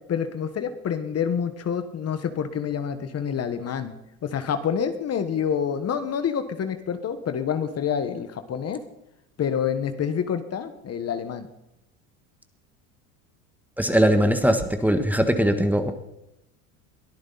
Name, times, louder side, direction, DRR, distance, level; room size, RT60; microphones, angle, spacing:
voice 1, 0.1-3.9 4.2-8.8 9.4-11.5, left 7 dB, 35° left, 10 dB, 1.5 m, -27 dB
voice 2, 13.8-15.9, equal, 5° right, 7 dB, 1.5 m, -20 dB
22.5 x 13.0 x 4.2 m, 0.88 s
supercardioid pair, 95°, 42 cm